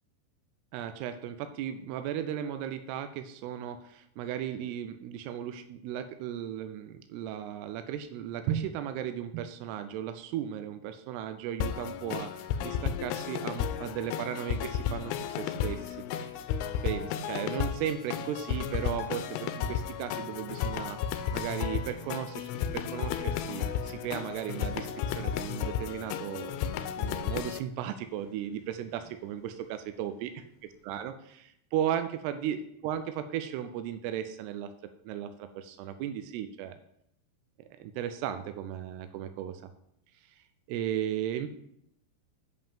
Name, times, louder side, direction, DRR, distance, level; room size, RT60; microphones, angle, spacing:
voice 1, 0.7-16.0 16.8-21.0 21.3-24.9 25.2-26.6 26.9-30.3 30.8-32.6 32.8-34.7 35.1-36.8 37.8-39.7 40.3-40.4 40.7-41.5, right 10 dB, 90° right, 9 dB, 2.7 m, -35 dB
sound 1, 11.6-27.6, left 8 dB, 80° left, 2.4 m, -33 dB
sound 2, 17.9-30.8, equal, 55° left, 2.0 m, -55 dB
8.2 x 5.3 x 7.3 m, 0.76 s
omnidirectional pair, 4.6 m